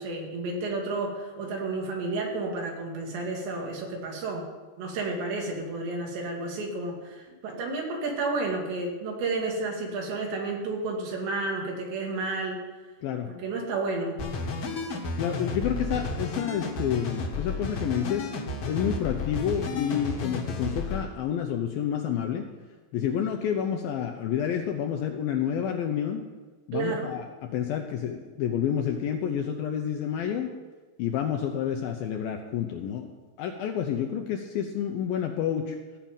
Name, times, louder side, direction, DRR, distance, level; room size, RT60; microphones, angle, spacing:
voice 1, 0.0-4.4 4.8-12.6 13.3-14.2 26.7-27.1, right 3 dB, 85° right, 0 dB, 4.5 m, -31 dB
sound 1, 14.2-21.0, left 3 dB, 55° left, 1.7 m, -32 dB
voice 2, 15.2-18.3 18.7-22.5 22.9-26.2 26.7-27.2 27.5-30.5 31.0-33.1 33.4-35.8, left 9 dB, 75° left, 3 dB, 2.2 m, -29 dB
15.0 x 5.8 x 9.0 m, 1.3 s
omnidirectional pair, 4.9 m